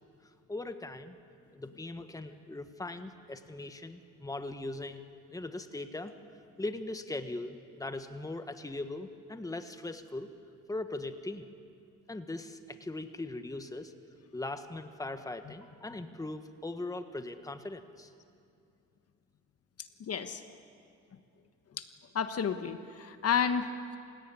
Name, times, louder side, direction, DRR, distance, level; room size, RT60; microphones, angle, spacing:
voice 1, 0.5-1.1 1.5-5.0 5.3-6.1 6.6-10.3 10.7-11.5 12.1-13.9 14.3-18.1, left 2 dB, 10° left, 8 dB, 1.4 m, -40 dB
voice 2, 20.0-20.4 21.8-21.9 22.1-24.0, left 7 dB, 50° left, 9 dB, 1.4 m, -31 dB
28.0 x 17.0 x 9.8 m, 2.4 s
cardioid pair, 90°, 30 cm